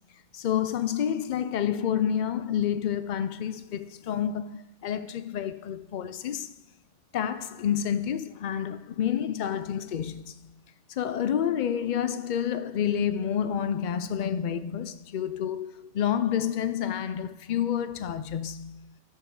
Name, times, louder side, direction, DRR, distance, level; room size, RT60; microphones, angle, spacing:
voice 1, 0.3-6.5 7.1-10.2 11.0-18.9, left 9 dB, 55° left, 0.5 m, -29 dB
9.4 x 5.6 x 6.4 m
omnidirectional pair, 1.2 m